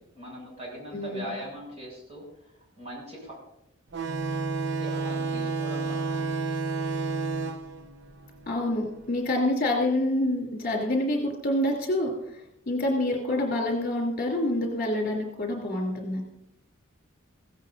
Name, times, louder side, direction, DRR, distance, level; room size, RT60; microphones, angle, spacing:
voice 1, 0.0-2.2 2.8-3.4 4.8-6.2, equal, 30° right, -2 dB, 6.3 m, -40 dB
voice 2, 0.9-1.3 8.5-12.1 12.7-16.2, left 1 dB, 45° left, 0 dB, 3.0 m, -27 dB
sound 1, 3.9-9.1, right 4 dB, 55° right, 0.8 m, -31 dB
16.5 x 16.0 x 2.6 m, 0.80 s
head